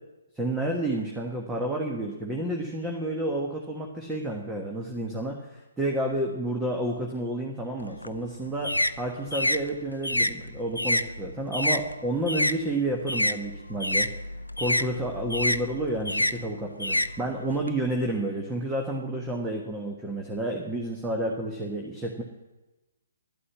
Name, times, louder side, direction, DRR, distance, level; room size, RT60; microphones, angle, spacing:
voice 1, 0.3-14.1 14.6-22.2, right 1 dB, 5° right, 0 dB, 1.4 m, -30 dB
sound 1, 7.8-12.6 12.9-17.7, left 1 dB, 90° left, 0.5 m, -28 dB
11.5 x 8.5 x 9.6 m, 1.1 s
figure-of-eight pair, 130°, 0 cm